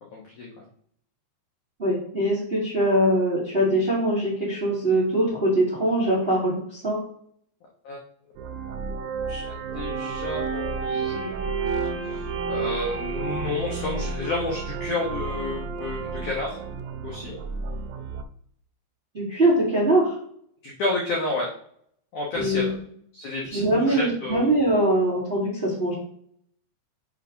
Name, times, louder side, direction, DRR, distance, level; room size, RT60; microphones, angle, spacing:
voice 1, 0.1-0.6 7.8-8.0 9.3-16.6 17.0-17.4 20.6-21.5 22.1-22.7 23.1-24.5, left 2 dB, 80° left, -3 dB, 1.7 m, -31 dB
voice 2, 1.8-7.0 19.1-20.1 22.3-22.8 23.5-25.9, right 1 dB, 40° right, -6 dB, 0.8 m, -22 dB
sound 1, 8.4-18.2, right 5 dB, 85° right, 2.8 m, -31 dB
6.9 x 3.4 x 5.2 m, 0.64 s
omnidirectional pair, 5.3 m